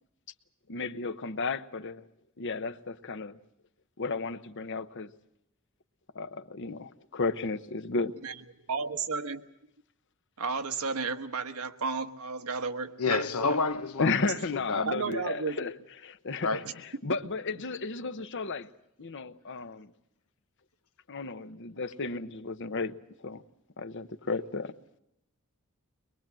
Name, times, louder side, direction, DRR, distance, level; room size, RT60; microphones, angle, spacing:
voice 1, 0.7-2.1 2.4-3.4 4.0-5.1 6.1-8.2 14.0-15.7 16.0-18.7 19.0-19.9 21.1-22.9 23.2-23.4 23.8-24.7, left 3 dB, 55° left, 0.9 m, -33 dB
voice 2, 8.7-9.4 10.4-13.2 14.8-15.7, right 4 dB, 85° right, 1.3 m, -33 dB
voice 3, 13.0-14.3 14.7-14.9 16.4-16.7, left 4 dB, 90° left, 1.1 m, -29 dB
23.0 x 22.0 x 7.6 m
head